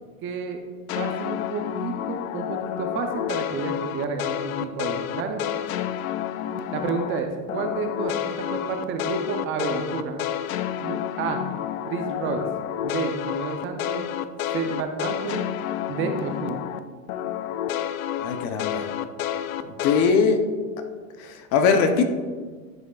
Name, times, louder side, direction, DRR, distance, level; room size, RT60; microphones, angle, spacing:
voice 1, 0.2-0.6 1.0-5.4 6.7-10.2 10.8-11.4 11.9-12.4 12.8-14.0 14.5-15.4 15.9-16.6, right 4 dB, 30° right, 5 dB, 0.6 m, -30 dB
sound 1, 0.9-7.2 7.5-16.8 17.1-20.1, left 10 dB, 80° left, 0.5 m, -29 dB
voice 2, 18.2-18.9 19.8-20.4 21.2-22.0, left 5 dB, 45° left, 7 dB, 0.7 m, -21 dB
10.5 x 5.1 x 2.3 m, 1.5 s
supercardioid pair, 130°, 41 cm